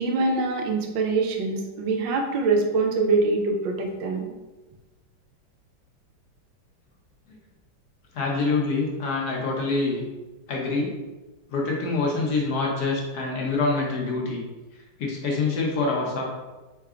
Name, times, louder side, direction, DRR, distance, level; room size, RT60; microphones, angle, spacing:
voice 1, 0.0-4.3, right 3 dB, 70° right, 2 dB, 1.3 m, -24 dB
voice 2, 8.1-10.0 10.5-10.9 11.5-14.4 15.0-16.3, left 3 dB, 60° left, -2 dB, 1.2 m, -25 dB
4.4 x 3.7 x 2.4 m, 1.1 s
omnidirectional pair, 2.2 m